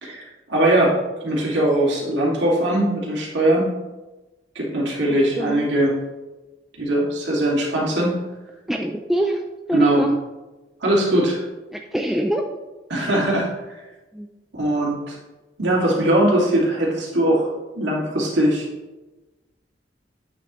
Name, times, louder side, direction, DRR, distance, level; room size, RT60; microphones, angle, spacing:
voice 1, 0.0-0.9 1.2-3.7 4.5-5.9 6.8-8.2 9.7-10.0 10.8-11.4 12.9-13.7 14.5-15.2 15.6-17.5 17.8-18.7, right 1 dB, 85° right, -4 dB, 2.2 m, -20 dB
voice 2, 5.1-5.7 8.7-9.4 9.7-10.2 11.7-12.6 14.1-14.3, right 1 dB, ahead, 2 dB, 0.3 m, -25 dB
8.6 x 6.4 x 3.0 m, 1.1 s
head